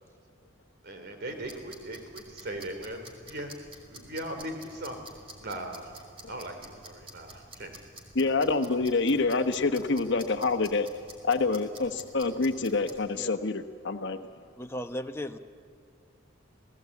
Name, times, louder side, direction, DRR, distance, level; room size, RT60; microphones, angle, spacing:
voice 1, 0.8-3.5 3.8-5.0 5.4-5.9 6.3-7.7, right 1 dB, 55° right, 5 dB, 3.1 m, -39 dB
sound 1, 1.3-13.1, right 2 dB, 30° right, 2.9 m, -50 dB
voice 2, 8.1-10.9 11.2-14.2, left 3 dB, 60° left, 8 dB, 1.2 m, -27 dB
voice 3, 14.6-15.4, left 1 dB, 15° left, 6 dB, 0.9 m, -36 dB
28.5 x 18.0 x 8.4 m, 2.1 s
head